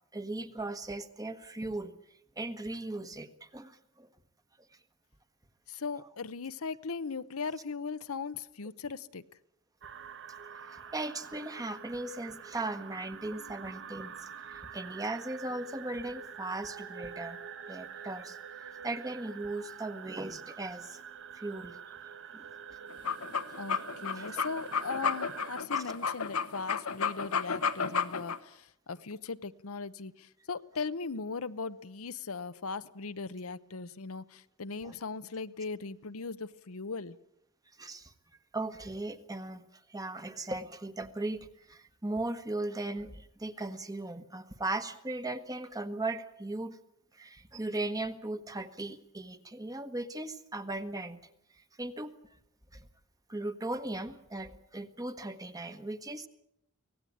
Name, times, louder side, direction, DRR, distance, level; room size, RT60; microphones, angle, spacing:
voice 1, 0.1-1.9 2.4-4.1 10.6-17.4 17.7-18.4 18.8-21.0 21.3-21.8 22.3-22.4 24.1-24.4 25.8-25.9 34.8-34.9 37.8-38.1 38.5-39.6 39.9-46.8 47.1-51.2 51.8-52.1 52.7-52.9 53.3-56.3, right 2 dB, 15° right, 9 dB, 1.3 m, -38 dB
voice 2, 5.7-9.2 23.6-37.2, left 4 dB, 70° left, 13 dB, 0.8 m, -39 dB
sound 1, 9.8-25.6, right 7 dB, 60° right, 1.3 m, -46 dB
sound 2, 22.9-28.4, left 6 dB, 85° left, 1.3 m, -32 dB
24.5 x 18.0 x 8.6 m, 0.74 s
head